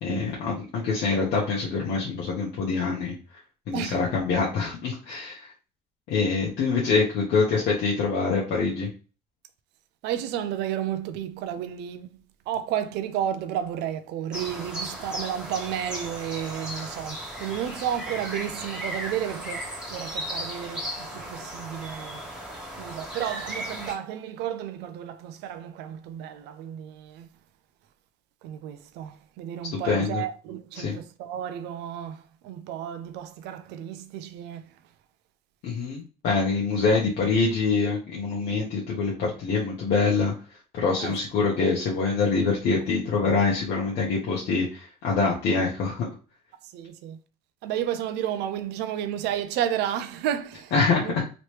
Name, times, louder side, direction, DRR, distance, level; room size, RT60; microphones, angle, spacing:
voice 1, 0.0-3.1 3.7-5.5 6.1-8.9 29.7-30.2 30.7-31.0 35.6-40.3 40.7-46.1 50.7-51.2, left 4 dB, 80° left, 0.9 m, -25 dB
voice 2, 10.0-12.1 12.5-22.3 22.8-27.3 28.4-34.7 41.0-41.1 46.6-47.2 47.6-50.7 51.0-51.2, right 10 dB, 85° right, 0.4 m, -32 dB
sound 1, 14.3-23.9, equal, 5° right, 1.2 m, -36 dB
3.1 x 2.9 x 3.1 m
cardioid pair, 110°, 17 cm